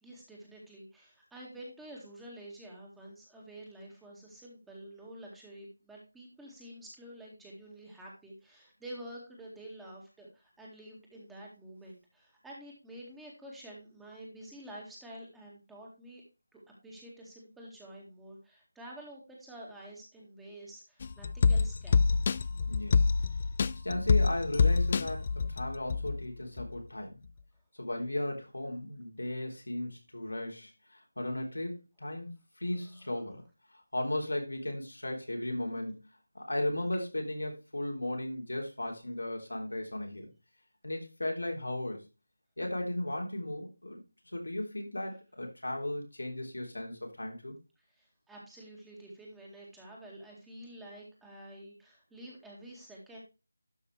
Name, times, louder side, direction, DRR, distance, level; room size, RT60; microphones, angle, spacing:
voice 1, 0.0-16.2 16.5-22.2 47.8-53.2, right 1 dB, 5° right, -3 dB, 2.0 m, -49 dB
sound 1, 21.0-26.2 26.6-26.7, left 5 dB, 35° left, 0.3 m, -27 dB
voice 2, 22.6-23.0 23.8-27.2 27.7-33.4 33.7-35.9 36.3-40.3 40.8-42.0 42.6-44.0 44.3-47.6, left 1 dB, 85° left, 1 dB, 3.6 m, -36 dB
12.0 x 5.8 x 3.3 m, 0.29 s
figure-of-eight pair, 165°, 0 cm